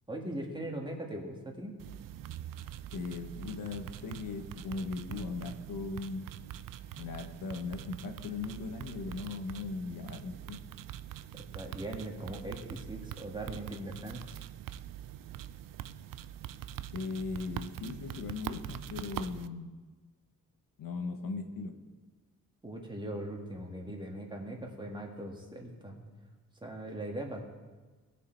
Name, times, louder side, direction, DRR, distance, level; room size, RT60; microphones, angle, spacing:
voice 1, 0.1-1.7 11.5-14.4 22.6-26.0 26.6-27.5, right 1 dB, 15° right, 0 dB, 1.7 m, -40 dB
sound 1, 1.8-19.5, right 11 dB, 75° right, 0.5 m, -44 dB
voice 2, 2.9-6.3 7.0-10.6 16.9-19.7 20.8-21.7, left 4 dB, 80° left, 5 dB, 1.2 m, -38 dB
18.5 x 6.6 x 4.5 m, 1.3 s
wide cardioid pair, 135°, 33 cm